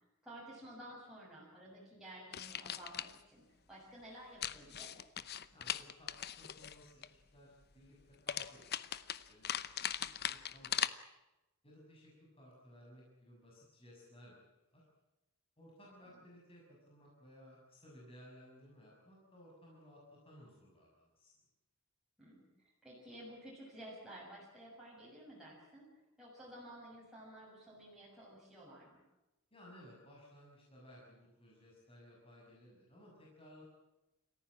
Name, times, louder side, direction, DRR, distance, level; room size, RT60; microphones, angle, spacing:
voice 1, 0.2-3.4 3.7-4.9 15.9-16.1 22.2-25.9 26.2-29.0, right 1 dB, ahead, -6 dB, 7.2 m, -53 dB
sound 1, 2.3-3.2 4.4-7.1 8.3-10.9, left 10 dB, 50° left, 0.8 m, -40 dB
voice 2, 5.5-10.8 11.6-14.4 14.7-14.8 15.6-21.3 29.5-33.6, equal, 25° left, -4 dB, 6.8 m, -59 dB
28.5 x 15.0 x 8.8 m, 0.98 s
head